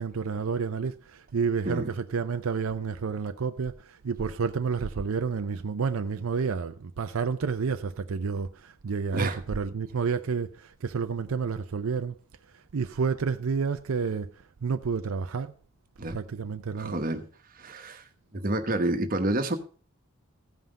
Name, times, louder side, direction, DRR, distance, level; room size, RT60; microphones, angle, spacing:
voice 1, 0.0-12.2 12.7-14.3 14.6-15.5 16.1-17.0, right 5 dB, 75° right, 0.5 m, -30 dB
voice 2, 16.7-17.2 17.6-18.0 18.3-19.6, right 1 dB, 40° right, 1.1 m, -28 dB
15.5 x 5.7 x 5.1 m
head